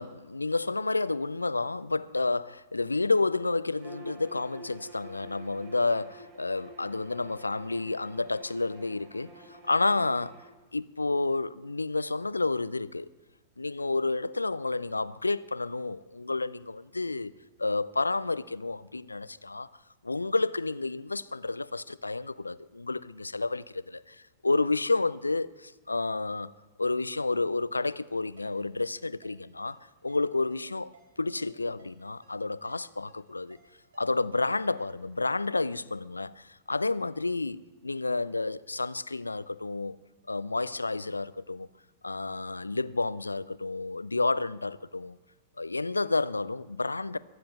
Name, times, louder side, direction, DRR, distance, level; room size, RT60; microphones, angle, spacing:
voice 1, 0.0-10.3 10.7-13.1 13.6-17.3 17.6-19.7 20.0-24.1 24.4-26.5 26.8-30.9 31.2-33.6 34.0-40.0 40.3-41.7 42.0-45.2 45.6-47.2, left 3 dB, 80° left, 0.5 m, -30 dB
Bowed string instrument, 3.8-10.5, right 1 dB, 35° right, 5.0 m, -49 dB
Ringtone, 28.4-35.2, right 4 dB, 65° right, 6.6 m, -63 dB
23.0 x 7.6 x 7.9 m
figure-of-eight pair, 95°, 0 cm